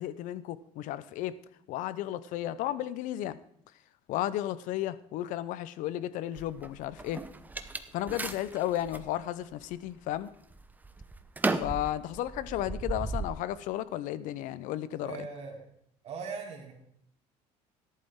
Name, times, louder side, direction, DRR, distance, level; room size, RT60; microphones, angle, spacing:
voice 1, 0.0-1.4 1.7-3.4 4.1-7.2 7.9-10.3 11.6-15.3, left 13 dB, 70° left, 17 dB, 0.7 m, -33 dB
sound 1, 6.4-9.1 9.6-10.2 10.5-13.3, right 3 dB, 10° right, 0.8 m, -35 dB
voice 2, 15.0-15.7 16.0-16.7, right 5 dB, 50° right, 0 dB, 3.2 m, -39 dB
13.5 x 11.0 x 3.7 m, 0.69 s
cardioid pair, 110°, 14 cm